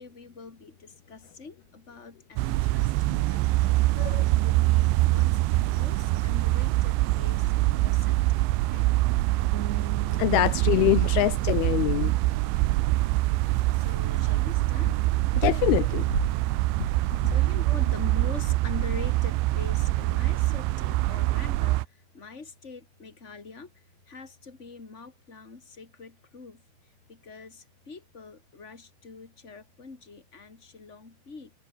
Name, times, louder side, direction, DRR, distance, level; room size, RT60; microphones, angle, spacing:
voice 1, 0.0-8.5 9.0-9.5 11.7-12.8 13.7-15.3 15.8-26.6 27.1-31.5, left 4 dB, 15° left, 3.0 m, -45 dB
sound 1, 2.4-21.9, right 19 dB, 80° right, 3.1 m, -24 dB
sound 2, 9.5-15.1, right 8 dB, 45° right, 2.6 m, -43 dB
voice 2, 10.2-12.1 15.4-16.2, left 16 dB, 85° left, 2.2 m, -24 dB
omnidirectional pair, 5.5 m